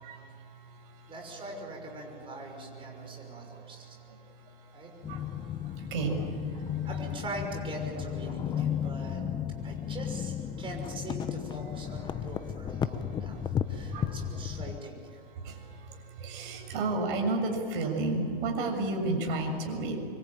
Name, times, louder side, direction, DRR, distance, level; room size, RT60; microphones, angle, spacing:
voice 1, 0.0-1.6 2.0-7.0 8.3-8.9 9.6-9.9 10.5-10.6 11.2-11.3 12.1-14.8 15.2-20.1, right 2 dB, 55° right, 3 dB, 7.0 m, -35 dB
voice 2, 1.1-4.0 4.7-4.9 6.8-9.2 9.6-13.4 13.7-15.2, right 2 dB, 15° right, 2 dB, 6.2 m, -42 dB
sound 1, 5.0-14.8, left 9 dB, 15° left, 0.7 m, -34 dB
25.0 x 24.5 x 9.0 m, 2.5 s
supercardioid pair, 145°, 29 cm